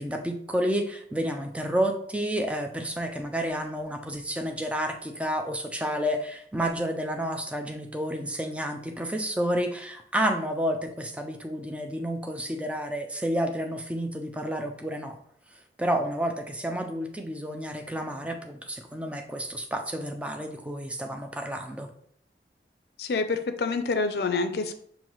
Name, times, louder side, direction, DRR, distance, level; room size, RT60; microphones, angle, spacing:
voice 1, 0.0-15.2 15.8-21.9, equal, 5° right, 4 dB, 0.4 m, -30 dB
voice 2, 23.0-24.7, left 4 dB, 65° left, 8 dB, 0.4 m, -27 dB
5.6 x 2.6 x 3.1 m, 0.63 s
head